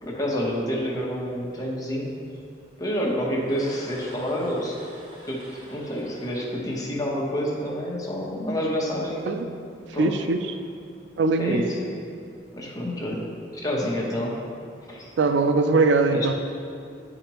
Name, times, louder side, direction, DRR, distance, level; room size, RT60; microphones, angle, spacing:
voice 1, 0.0-2.1 2.8-4.8 5.3-9.3 9.9-10.2 11.4-11.8 12.5-13.3 13.5-14.4 14.9-15.1 16.1-16.3, equal, 20° left, -3 dB, 1.0 m, -28 dB
sound 1, 3.4-7.6, right 1 dB, 30° right, 1.5 m, -47 dB
voice 2, 10.0-10.6 11.2-11.7 15.2-16.3, right 3 dB, 75° right, 7 dB, 0.4 m, -21 dB
9.2 x 5.0 x 3.0 m, 2.4 s
head